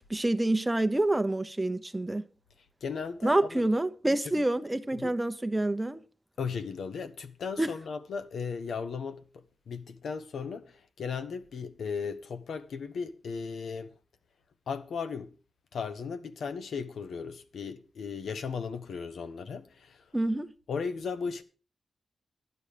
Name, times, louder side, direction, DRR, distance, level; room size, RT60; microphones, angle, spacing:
voice 1, 0.1-2.2 3.2-6.0 7.6-7.7 20.1-20.5, right 1 dB, 15° right, 0.9 m, -27 dB
voice 2, 2.8-3.6 4.9-5.1 6.4-9.2 9.7-13.9 14.7-15.3 15.7-20.0 20.7-21.4, left 5 dB, 90° left, 1.1 m, -36 dB
11.5 x 10.5 x 5.1 m
wide cardioid pair, 95°, 0 cm